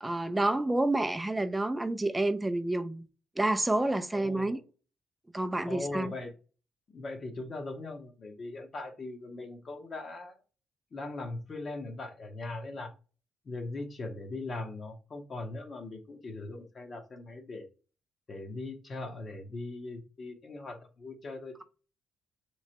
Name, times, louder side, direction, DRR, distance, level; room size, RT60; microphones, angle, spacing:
voice 1, 0.0-3.0 3.4-4.6 5.3-6.1, right 2 dB, 10° right, 0.4 m, -29 dB
voice 2, 4.1-4.6 5.6-6.3 6.9-10.3 10.9-12.9 13.5-17.7 18.3-21.6, left 2 dB, 40° left, 0.8 m, -40 dB
3.1 x 3.0 x 2.8 m
cardioid pair, 90°, 0 cm